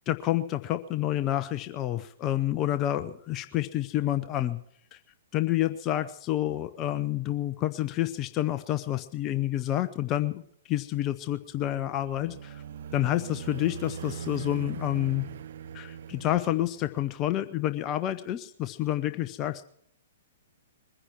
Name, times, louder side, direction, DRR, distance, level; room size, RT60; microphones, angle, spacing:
voice 1, 0.1-4.6 4.9-5.0 5.3-12.6 12.9-15.2 15.7-19.6, left 13 dB, 30° left, 10 dB, 0.8 m, -29 dB
sound 1, 11.5-17.2, right 8 dB, 55° right, 0.6 m, -41 dB
22.0 x 10.0 x 6.0 m, 0.67 s
figure-of-eight pair, 115°, 0 cm